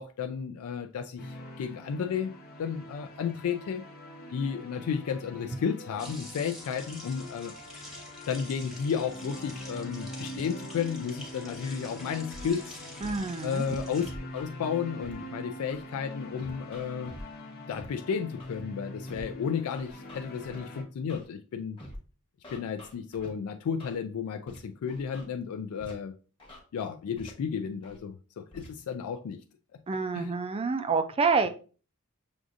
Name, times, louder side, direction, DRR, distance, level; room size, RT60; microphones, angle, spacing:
voice 1, 0.0-2.3 2.6-3.8 4.3-7.5 8.3-12.7 13.4-17.1 17.7-21.8 22.5-26.1 26.7-29.4 29.7-29.8 30.1-30.3, left 7 dB, 80° left, 0.3 m, -33 dB
sound 1, 1.2-20.8, left 1 dB, 45° left, 0.7 m, -44 dB
sound 2, 6.0-14.1, equal, ahead, 0.8 m, -47 dB
Scratching (performance technique), 12.3-12.5 13.0-13.2 13.7-14.5 15.0-15.1 15.7-15.8 16.4-17.2 17.7-17.9 18.4-18.6 19.1-19.2 19.7-20.6 21.1-21.2 21.8-22.0 22.4-23.3 23.8-24.0 24.5-24.6 24.9-25.3 25.8-25.9 26.4-26.6 27.2-27.3 27.8-28.0 28.5-28.7, equal, 25° left, 1.0 m, -46 dB
voice 2, 13.0-13.6 29.9-31.5, right 4 dB, 25° right, 0.3 m, -27 dB
6.0 x 2.5 x 2.5 m
head